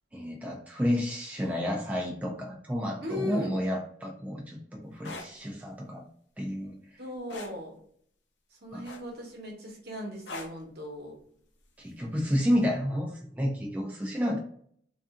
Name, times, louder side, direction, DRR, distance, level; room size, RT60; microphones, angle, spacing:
voice 1, 0.1-6.1 6.4-7.0 8.7-8.8 11.8-14.4, equal, 10° right, -2 dB, 0.3 m, -30 dB
voice 2, 3.0-3.6 7.0-7.7 8.6-11.2, left 1 dB, 60° right, -1 dB, 0.9 m, -38 dB
sound 1, 4.9-5.3 7.3-7.6 8.8-9.3 10.3-10.6 12.0-12.2, left 3 dB, 70° left, 0.5 m, -40 dB
2.7 x 2.4 x 2.4 m, 0.62 s
head